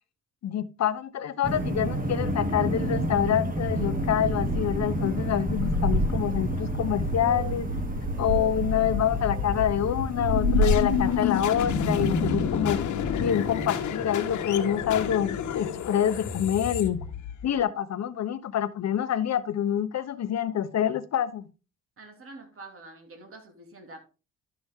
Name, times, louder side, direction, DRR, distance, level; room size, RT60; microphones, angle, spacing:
voice 1, 0.4-7.7 8.2-12.8 13.2-17.0 17.4-21.5, left 9 dB, 60° left, 1.1 m, -26 dB
sound 1, 1.4-11.2, equal, 30° right, 1.8 m, -28 dB
sound 2, 8.7-17.6, left 7 dB, 75° left, 1.4 m, -29 dB
voice 2, 22.0-24.0, right 2 dB, 45° right, 3.0 m, -46 dB
12.5 x 6.0 x 3.7 m
cardioid pair, 90°, 30 cm